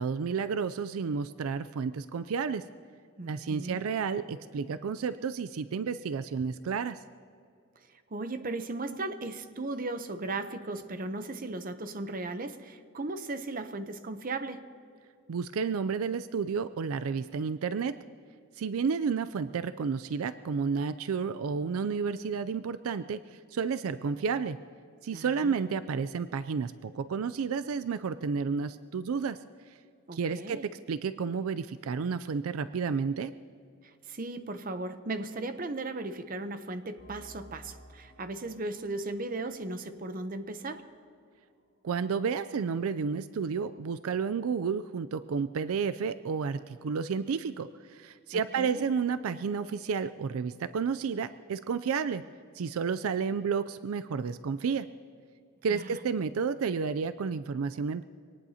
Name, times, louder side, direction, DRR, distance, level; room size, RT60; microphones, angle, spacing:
voice 1, 0.0-2.6 3.3-7.0 15.3-18.0 18.6-23.2 23.5-24.6 25.0-29.4 30.1-33.3 41.8-52.2 52.6-54.9 55.6-58.0, right 5 dB, 75° right, 12 dB, 0.4 m, -31 dB
voice 2, 3.2-3.8 8.1-14.7 25.1-25.6 30.1-30.7 34.1-40.9 48.3-48.9 55.7-56.0, right 2 dB, 40° right, 9 dB, 0.7 m, -37 dB
sound 1, 37.0-42.2, equal, 60° left, 5.3 m, -56 dB
24.5 x 18.5 x 2.8 m, 2.4 s
head